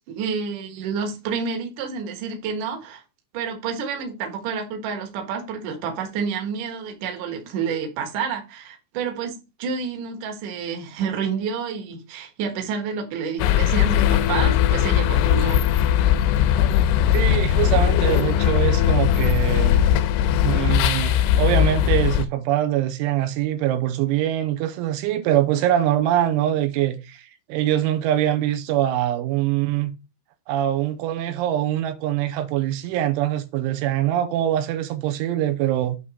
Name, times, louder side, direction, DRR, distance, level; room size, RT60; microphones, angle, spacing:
voice 1, 0.1-3.0 3.3-15.6, right 6 dB, 65° right, 2.2 m, -29 dB
sound 1, 13.4-22.3, left 10 dB, 85° left, 2.9 m, -19 dB
voice 2, 17.1-19.8 20.4-29.9 30.5-36.0, right 12 dB, 90° right, 3.1 m, -23 dB
8.6 x 3.7 x 5.4 m
omnidirectional pair, 5.6 m